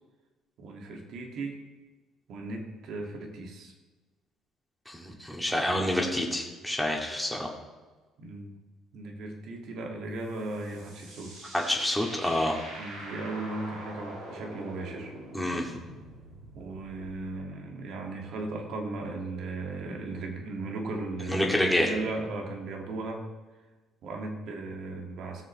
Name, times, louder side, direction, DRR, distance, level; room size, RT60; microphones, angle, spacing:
voice 1, 0.6-1.6 2.3-3.7 8.2-8.5 8.9-11.5 12.8-15.1 16.5-23.2 24.0-25.4, right 2 dB, 65° right, 2 dB, 2.0 m, -36 dB
voice 2, 4.9-7.5 11.5-12.6 15.3-15.7 21.3-21.9, left 1 dB, 5° left, -1 dB, 2.3 m, -28 dB
sound 1, 10.2-17.4, right 1 dB, 85° right, 3.4 m, -44 dB
17.0 x 6.8 x 3.2 m, 1.3 s
hypercardioid pair, 60°, 0 cm